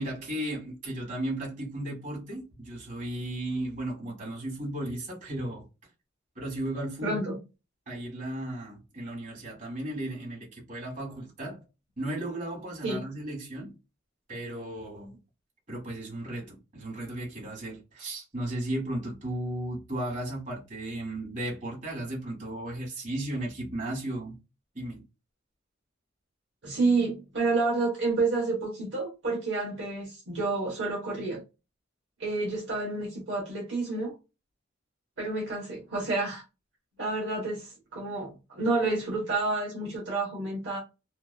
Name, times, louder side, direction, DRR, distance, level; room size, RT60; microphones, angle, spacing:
voice 1, 0.0-5.7 6.3-7.2 7.9-11.6 12.0-13.7 14.3-15.1 15.7-24.4 24.7-25.0, right 1 dB, 40° right, 1.3 m, -35 dB
voice 2, 7.0-7.4 12.8-13.0 26.6-31.4 32.2-34.1 35.2-36.4 37.0-40.8, right 3 dB, 65° right, 0.9 m, -29 dB
2.7 x 2.3 x 2.2 m
head